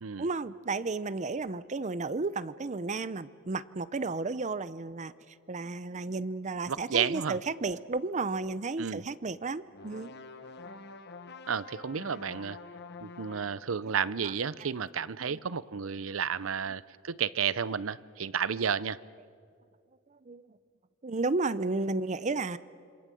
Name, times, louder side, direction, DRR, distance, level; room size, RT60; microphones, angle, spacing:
voice 1, 0.2-5.1 5.5-10.1 13.8-13.9 14.2-14.3 14.6-14.7 15.2-15.4 20.3-20.5 21.0-22.6, right 3 dB, 35° right, 16 dB, 0.6 m, -33 dB
voice 2, 6.7-7.4 8.8-9.0 11.5-12.6 13.0-19.0, right 7 dB, 85° right, 18 dB, 0.7 m, -32 dB
sound 1, 9.7-13.7, left 3 dB, 55° left, 1.4 m, -47 dB
27.0 x 25.0 x 7.8 m, 2.3 s
head